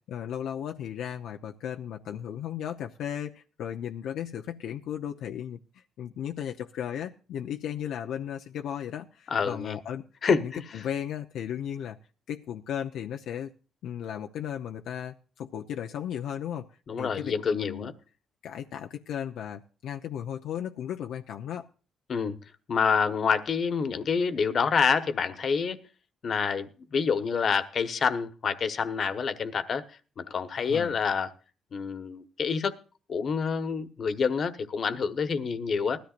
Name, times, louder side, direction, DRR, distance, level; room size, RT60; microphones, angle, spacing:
voice 1, 0.1-10.0 10.4-12.0 12.3-13.5 13.8-16.7 17.0-17.9 18.4-21.7 30.6-31.0, left 9 dB, 80° left, 0.7 m, -35 dB
voice 2, 9.3-9.8 10.2-10.6 16.9-17.9 22.1-22.4 22.7-25.8 26.2-29.8 30.2-31.3 31.7-32.7 33.1-36.0, left 6 dB, 50° left, 1.3 m, -27 dB
19.5 x 13.5 x 2.5 m
cardioid pair, 90°, 0 cm